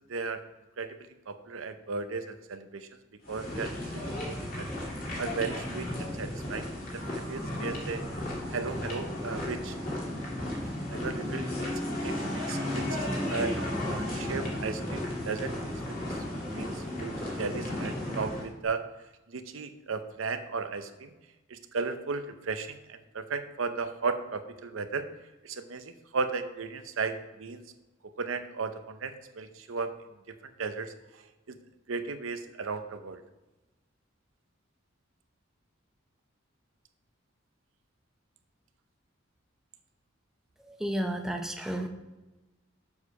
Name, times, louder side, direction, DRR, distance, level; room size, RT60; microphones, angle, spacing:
voice 1, 0.1-0.4 0.8-2.9 3.3-4.7 5.2-6.7 6.9-8.0 8.5-9.8 10.9-11.7 12.0-15.5 15.9-16.0 16.3-18.8 19.3-21.1 21.5-25.1 25.4-27.6 28.2-29.9 30.6-30.9 31.5-31.6 31.9-33.2, right 4 dB, 90° right, 9 dB, 0.7 m, -35 dB
sound 1, 3.2-18.5, left 1 dB, 45° left, 2.4 m, -34 dB
voice 2, 40.6-41.9, equal, ahead, 3 dB, 0.6 m, -32 dB
7.2 x 6.6 x 4.8 m, 1.1 s
head